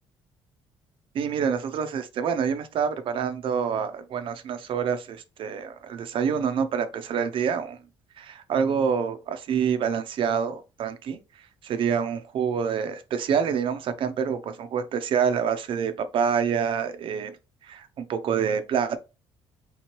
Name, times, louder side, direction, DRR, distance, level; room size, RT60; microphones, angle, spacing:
voice 1, 1.1-7.8 8.2-17.4 17.6-19.0, right 7 dB, 55° right, 0.5 m, -27 dB
3.6 x 2.9 x 3.0 m
cardioid pair, 125°, 10 cm